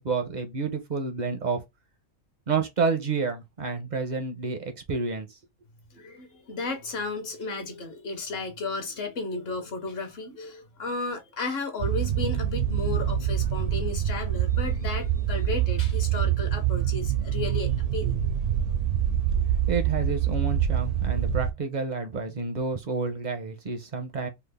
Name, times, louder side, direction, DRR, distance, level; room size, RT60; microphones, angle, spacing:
voice 1, 0.0-1.6 2.5-5.4 19.4-24.3, right 4 dB, 50° right, 0.5 m, -29 dB
voice 2, 5.9-18.2, left 3 dB, 55° left, 0.8 m, -34 dB
sound 1, 11.8-21.5, right 10 dB, 70° right, 0.9 m, -26 dB
3.4 x 2.0 x 3.3 m
omnidirectional pair, 1.4 m